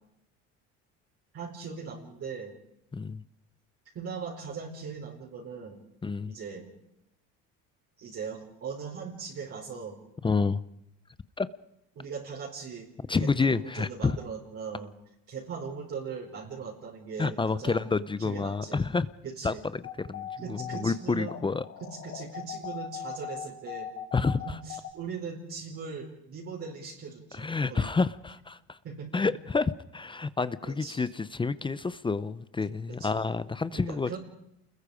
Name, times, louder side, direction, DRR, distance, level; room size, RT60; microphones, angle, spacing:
voice 1, 1.3-2.5 3.9-5.8 6.3-6.7 8.0-10.0 11.9-12.9 13.2-14.9 15.3-17.9 18.2-18.8 19.2-19.6 20.4-21.3 21.8-23.9 24.4-27.9 28.8-29.2 30.6-31.0 33.0-33.2 33.7-34.2, right 5 dB, 45° right, -3 dB, 5.1 m, -39 dB
voice 2, 6.0-6.3 10.2-10.6 11.4-11.5 13.1-14.2 17.2-19.1 19.4-19.8 20.1-21.6 24.1-24.4 27.3-28.8 29.1-29.6 29.9-34.1, left 4 dB, 15° left, 15 dB, 0.7 m, -29 dB
sound 1, 19.8-24.9, left 10 dB, 55° left, 4.8 m, -39 dB
29.0 x 21.5 x 5.1 m, 0.83 s
cardioid pair, 120°, 32 cm